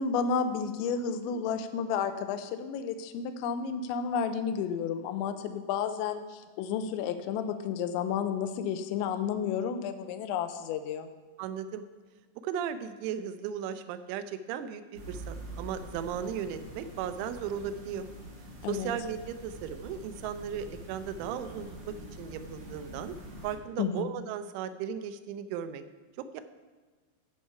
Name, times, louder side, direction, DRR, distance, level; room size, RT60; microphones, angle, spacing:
voice 1, 0.0-11.1 18.6-18.9 23.8-24.1, left 7 dB, 80° left, 9 dB, 2.9 m, -31 dB
voice 2, 11.4-11.8 12.4-14.8 15.1-18.1 18.7-23.2 23.4-25.8 26.2-26.4, right 8 dB, 85° right, 10 dB, 3.1 m, -36 dB
sound 1, 14.9-23.6, right 1 dB, 55° right, 3.1 m, -45 dB
13.0 x 4.8 x 5.6 m, 1.4 s
omnidirectional pair, 5.5 m